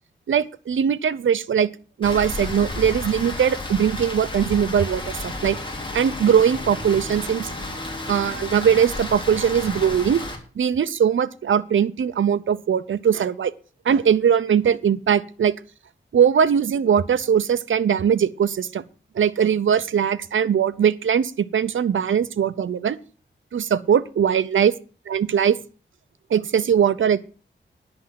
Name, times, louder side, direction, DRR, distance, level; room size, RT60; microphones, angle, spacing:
voice 1, 0.3-1.7 2.0-5.6 5.9-7.5 8.1-10.2 10.6-13.5 13.8-15.5 16.1-18.8 19.2-23.0 23.5-24.7 25.1-25.6 26.3-27.2, right 8 dB, 80° right, 13 dB, 0.7 m, -20 dB
Rain, 2.0-10.3, left 2 dB, 25° left, 3.4 m, -32 dB
11.0 x 6.2 x 7.6 m, 0.37 s
wide cardioid pair, 90°, 20 cm